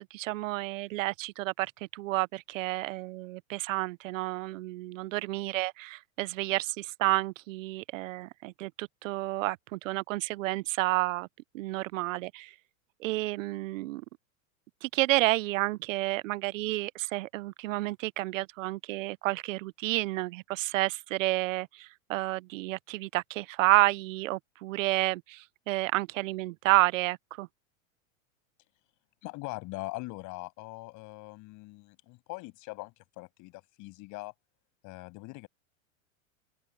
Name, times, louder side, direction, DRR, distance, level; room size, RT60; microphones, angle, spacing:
voice 1, 0.0-11.3 11.5-12.5 13.0-14.0 14.8-27.5, right 19 dB, 65° right, 0.7 m, -30 dB
voice 2, 29.2-34.3 34.8-35.5, left 23 dB, 45° left, 7.5 m, -42 dB
open air
hypercardioid pair, 130°, 42 cm